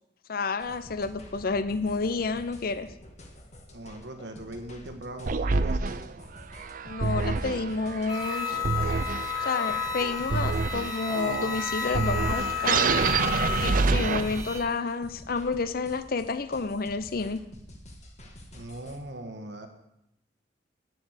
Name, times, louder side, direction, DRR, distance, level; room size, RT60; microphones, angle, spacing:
voice 1, 0.3-2.9 6.8-8.6 9.4-12.9 13.6-17.4, left 4 dB, 55° left, 13 dB, 0.6 m, -30 dB
sound 1, 0.6-19.0, left 1 dB, 40° left, 1.6 m, -48 dB
voice 2, 3.7-6.0 18.5-19.7, right 1 dB, 85° right, 5 dB, 1.4 m, -40 dB
sound 2, 5.3-14.7, right 4 dB, 50° right, 0.5 m, -28 dB
sound 3, 8.1-14.6, left 7 dB, 20° left, 1.6 m, -32 dB
9.5 x 7.7 x 8.0 m, 0.83 s
head